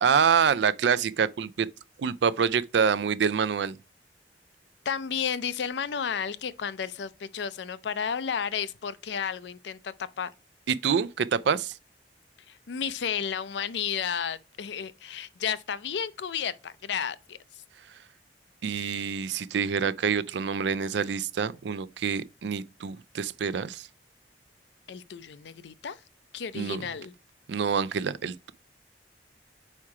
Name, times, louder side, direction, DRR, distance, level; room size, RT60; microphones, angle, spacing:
voice 1, 0.0-1.7 2.0-3.8 10.7-11.7 18.6-23.9 26.5-26.8 27.5-28.5, right 6 dB, 75° right, 0.4 m, -26 dB
voice 2, 4.9-10.3 12.5-17.4 24.9-26.0 26.3-27.1, left 7 dB, 75° left, 0.5 m, -32 dB
4.8 x 4.4 x 4.8 m
head